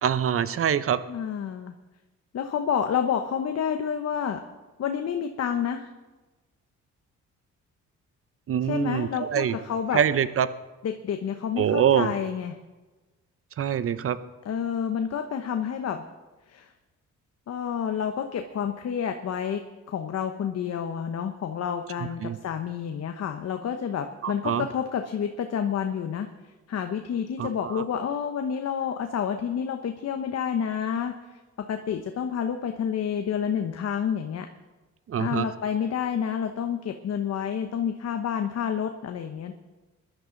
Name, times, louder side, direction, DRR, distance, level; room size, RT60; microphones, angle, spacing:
voice 1, 0.0-1.0 8.5-9.5 9.9-10.5 11.6-12.1 13.6-14.2 22.2-22.4 24.2-24.6 27.4-27.8 35.1-35.5, right 9 dB, 45° right, 14 dB, 0.8 m, -24 dB
voice 2, 1.1-1.7 2.3-4.4 4.8-5.9 8.6-10.0 10.8-12.5 14.4-16.0 16.5-16.7 17.5-19.6 19.9-26.3 26.7-31.2 31.7-34.5 35.2-39.5, left 8 dB, 55° left, 6 dB, 1.0 m, -29 dB
20.0 x 11.5 x 4.0 m, 1.2 s
cardioid pair, 90°, 30 cm